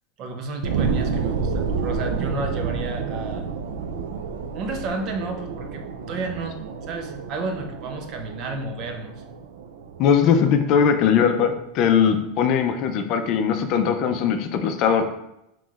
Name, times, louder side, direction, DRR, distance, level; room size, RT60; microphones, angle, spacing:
voice 1, 0.2-3.5 4.5-6.6 6.9-9.2, right 2 dB, 40° right, 4 dB, 0.6 m, -31 dB
sound 1, 0.6-11.6 12.1-12.2, right 5 dB, 90° right, 0.4 m, -30 dB
voice 2, 10.0-15.0, left 7 dB, 45° left, 6 dB, 0.5 m, -20 dB
5.5 x 3.0 x 2.4 m, 0.83 s
supercardioid pair, 145°, 0 cm